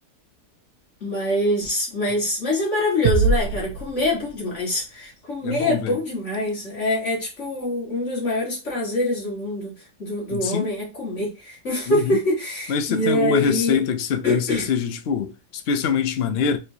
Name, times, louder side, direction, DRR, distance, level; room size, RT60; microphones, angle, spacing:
voice 1, 1.0-9.7 10.0-13.8 14.2-14.7, left 1 dB, 50° left, 1.8 m, -24 dB
sound 1, 3.0-4.8, right 4 dB, 75° right, 1.0 m, -24 dB
voice 2, 5.4-6.0 10.3-10.7 11.9-12.2 12.7-16.6, left 6 dB, 70° left, 0.6 m, -24 dB
4.2 x 3.1 x 2.7 m
omnidirectional pair, 1.7 m